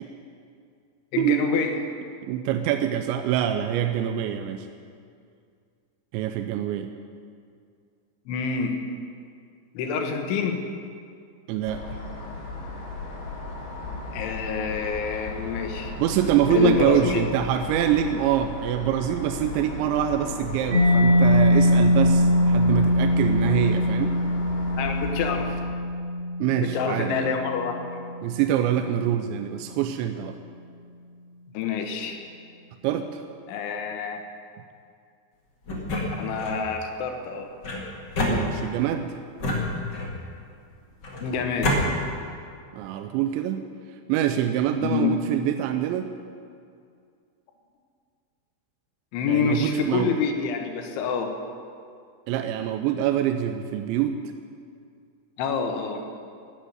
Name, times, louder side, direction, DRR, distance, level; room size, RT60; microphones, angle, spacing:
voice 1, 1.1-1.8 8.3-8.8 9.8-10.6 14.1-15.9 16.5-17.2 22.5-22.6 24.8-25.5 26.6-28.0 31.5-32.2 33.5-34.2 36.2-37.5 41.2-41.7 44.8-45.2 49.1-51.3 55.4-56.0, left 6 dB, 80° left, 4 dB, 3.7 m, -27 dB
voice 2, 2.3-4.7 6.1-6.9 11.5-11.8 16.0-24.2 26.4-27.3 28.2-30.4 32.8-33.2 38.3-39.2 42.7-43.6 44.1-46.1 49.3-50.1 52.3-54.2, right 10 dB, 85° right, 7 dB, 2.9 m, -25 dB
sound 1, 11.7-25.5, left 3 dB, 60° left, 4.2 m, -36 dB
Mallet percussion, 20.7-28.2, left 1 dB, 45° right, 2.2 m, -22 dB
sound 2, 35.7-36.6 37.6-38.9 39.4-40.3 41.0-41.8, left 1 dB, 40° left, 1.6 m, -28 dB
13.0 x 10.0 x 9.5 m, 2.3 s
omnidirectional pair, 5.4 m